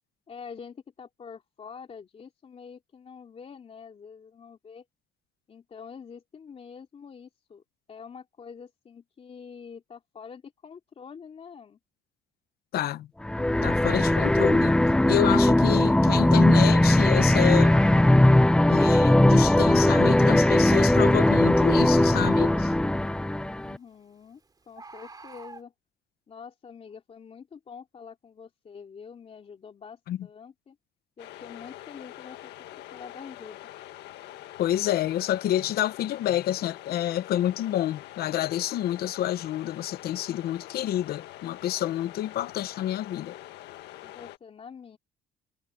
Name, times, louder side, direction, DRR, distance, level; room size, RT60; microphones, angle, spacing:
voice 1, 0.3-4.8 5.5-7.6 7.9-11.8 23.5-24.4 24.7-25.7 26.3-30.8 31.2-32.5 32.9-33.6 44.0-45.0, left 6 dB, 35° left, 3.1 m, -46 dB
voice 2, 12.7-13.1 13.6-14.7 15.1-17.7 18.7-22.7 30.1-30.2 34.6-43.4, left 12 dB, 65° left, 1.0 m, -28 dB
sound 1, 13.2-23.8, left 1 dB, 5° left, 0.5 m, -19 dB
Bird, 17.3-18.3 20.6-20.8 21.4-22.7 24.8-25.6, right 3 dB, 25° right, 3.0 m, -42 dB
sound 2, 31.2-44.4, left 14 dB, 85° left, 1.7 m, -44 dB
cardioid pair, 110°, 17 cm